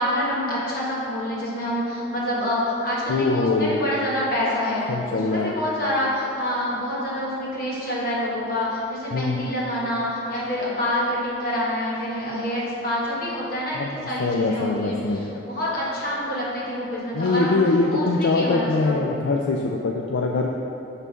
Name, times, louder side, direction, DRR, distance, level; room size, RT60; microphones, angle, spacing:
voice 1, 0.0-17.6 17.9-19.0, left 1 dB, 50° left, -6 dB, 1.4 m, -27 dB
voice 2, 3.1-3.8 4.9-5.5 9.1-9.5 13.7-13.9 14.2-15.4 17.1-20.5, left 3 dB, 75° left, 1 dB, 0.4 m, -23 dB
5.6 x 4.0 x 6.1 m, 3.0 s
head